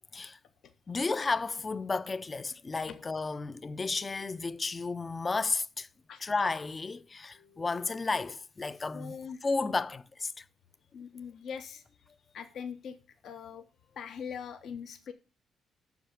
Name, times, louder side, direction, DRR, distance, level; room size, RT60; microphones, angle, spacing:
voice 1, 0.9-5.9 6.2-9.1 9.4-10.4, left 3 dB, 30° left, 0.5 m, -32 dB
voice 2, 7.3-7.8 8.9-9.4 10.9-13.0 13.2-15.1, left 7 dB, 70° left, 0.7 m, -43 dB
6.8 x 6.0 x 7.1 m
cardioid pair, 90°, 0 cm